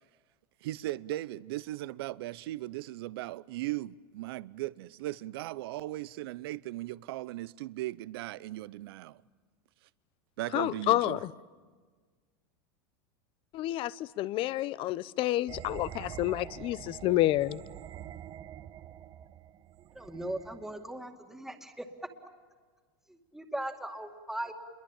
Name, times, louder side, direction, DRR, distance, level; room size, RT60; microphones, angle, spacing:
voice 1, 0.6-9.2 10.4-11.2, right 16 dB, 75° right, 0.7 m, -38 dB
voice 2, 10.5-11.3 13.5-17.6, left 15 dB, 45° left, 0.9 m, -29 dB
sound 1, 15.5-20.9, right 11 dB, 35° right, 1.1 m, -46 dB
voice 3, 19.9-21.9 23.1-24.5, right 1 dB, 5° right, 2.3 m, -39 dB
28.0 x 23.0 x 8.9 m
supercardioid pair, 125°, 13 cm